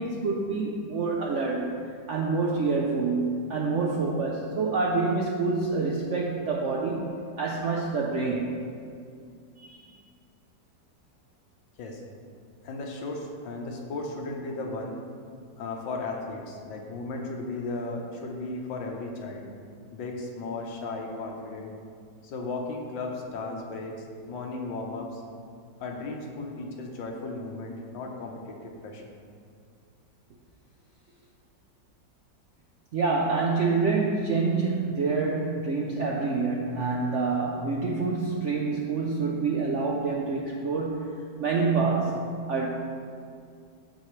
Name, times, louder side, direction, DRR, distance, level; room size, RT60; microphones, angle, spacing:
voice 1, 0.0-1.8 2.1-8.6 9.6-9.8 32.9-41.1 41.4-42.7, right 4 dB, 70° right, -1 dB, 0.7 m, -27 dB
voice 2, 12.6-15.0 15.6-19.5 19.9-21.7 22.2-25.2 25.8-29.0, left 3 dB, 90° left, 1 dB, 1.6 m, -35 dB
13.0 x 4.6 x 3.2 m, 2.3 s
omnidirectional pair, 2.0 m